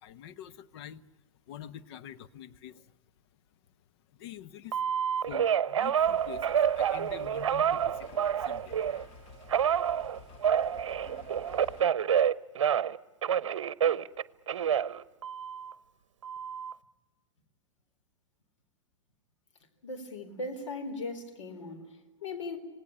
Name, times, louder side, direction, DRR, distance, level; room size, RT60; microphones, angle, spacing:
voice 1, 0.0-1.0 1.5-3.0 4.1-4.8 5.2-8.8 9.5-9.6, left 10 dB, 55° left, 13 dB, 1.2 m, -46 dB
Telephone, 4.7-9.0 9.5-13.0 13.2-15.7 16.2-16.7, right 8 dB, 70° right, 0.8 m, -28 dB
sound 1, 6.0-11.8, left 5 dB, 40° left, 1.8 m, -51 dB
voice 2, 19.8-22.6, left 2 dB, 70° left, 6 dB, 3.9 m, -38 dB
26.5 x 18.5 x 9.9 m, 1.2 s
hypercardioid pair, 100°, 16 cm